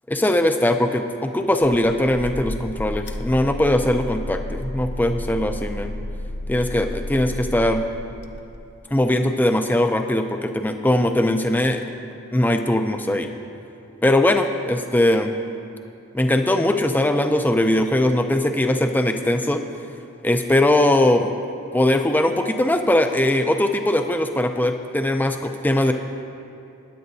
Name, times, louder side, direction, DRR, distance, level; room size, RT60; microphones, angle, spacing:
voice 1, 0.1-5.9 6.5-7.8 8.9-11.8 12.3-13.3 14.0-15.3 16.1-19.6 20.2-21.3 21.7-25.9, left 1 dB, 10° left, 6 dB, 0.4 m, -20 dB
sound 1, 1.5-8.9, left 1 dB, 50° left, 0.6 m, -32 dB
20.5 x 9.8 x 2.7 m, 2.7 s
head